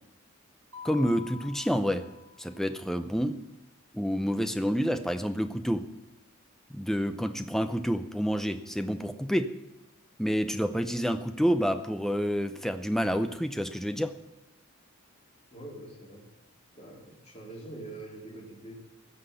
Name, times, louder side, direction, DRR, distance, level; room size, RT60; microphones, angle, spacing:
Mallet percussion, 0.7-2.8, left 7 dB, 80° right, 1.1 m, -47 dB
voice 1, 0.8-2.1 2.4-3.4 3.9-5.9 6.7-9.6 10.2-14.2, equal, ahead, 8 dB, 0.6 m, -28 dB
voice 2, 15.5-16.2 16.7-18.7, right 2 dB, 30° left, -5 dB, 3.5 m, -44 dB
15.5 x 5.9 x 8.0 m, 0.94 s
head